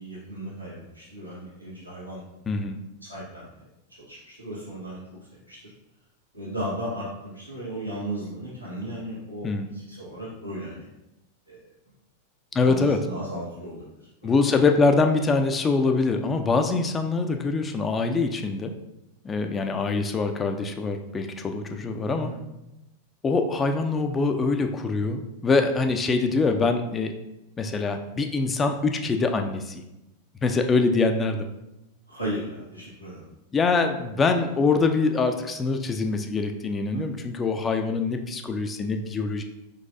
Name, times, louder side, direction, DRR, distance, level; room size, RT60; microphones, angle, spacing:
voice 1, 0.0-2.2 3.0-3.4 4.1-5.0 5.5-5.7 6.3-10.9 11.5-11.6 12.5-14.3 21.7-22.4 32.1-33.2 36.9-37.1, right 1 dB, 85° right, -8 dB, 1.5 m, -36 dB
voice 2, 2.5-2.8 9.4-9.7 12.5-13.0 14.2-18.7 19.2-22.3 23.2-27.1 27.6-29.8 30.4-31.5 33.5-39.4, left 4 dB, 20° left, 6 dB, 0.4 m, -24 dB
4.6 x 4.0 x 2.6 m, 0.93 s
figure-of-eight pair, 90°, 0 cm